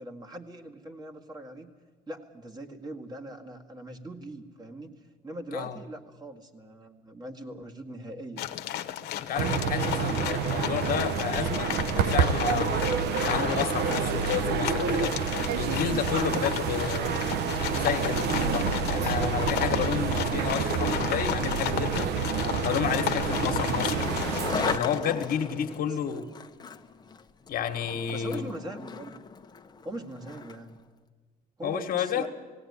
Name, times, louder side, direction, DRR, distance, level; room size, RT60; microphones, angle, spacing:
voice 1, 0.0-1.7 2.1-4.9 5.2-8.6 25.8-26.0 28.1-29.2 29.8-30.8 31.6-32.3, right 1 dB, 25° right, 2 dB, 2.0 m, -41 dB
sound 1, 8.4-25.5, left 12 dB, 75° left, 1.0 m, -34 dB
voice 2, 9.2-12.8 13.3-17.4 17.8-22.1 22.6-24.2 24.6-26.3 27.5-28.5 31.6-32.3, left 8 dB, 60° left, 5 dB, 1.6 m, -31 dB
sound 2, 9.4-24.8, right 7 dB, 75° right, 0.9 m, -28 dB
Skateboard, 22.4-30.7, left 5 dB, 25° left, 1.0 m, -38 dB
17.5 x 17.5 x 9.7 m, 1.5 s
cardioid pair, 110°, 17 cm